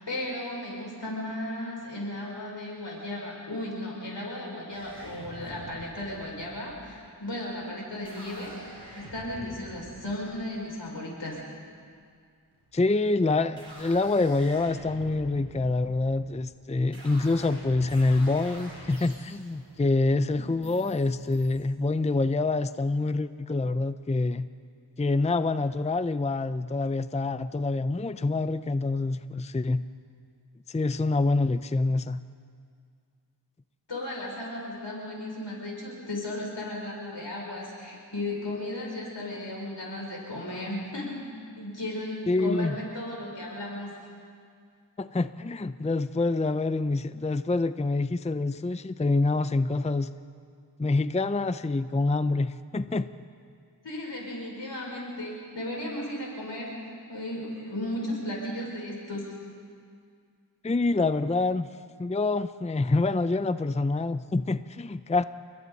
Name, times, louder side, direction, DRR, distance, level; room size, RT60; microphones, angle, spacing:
voice 1, 0.0-8.5 9.0-11.4 33.9-41.2 41.6-43.9 53.8-56.8 57.1-59.4, left 1 dB, 85° left, -3 dB, 5.9 m, -35 dB
sound 1, 4.7-11.5 12.5-13.0 13.4-21.7, right 1 dB, 65° right, 5.7 m, -47 dB
voice 2, 12.7-24.5 25.0-29.8 30.7-32.2 42.3-42.8 45.0-50.1 50.8-53.1 60.6-61.7 62.0-65.2, left 3 dB, 15° left, 12 dB, 0.5 m, -26 dB
30.0 x 21.5 x 4.1 m, 2.2 s
wide cardioid pair, 45°, 42 cm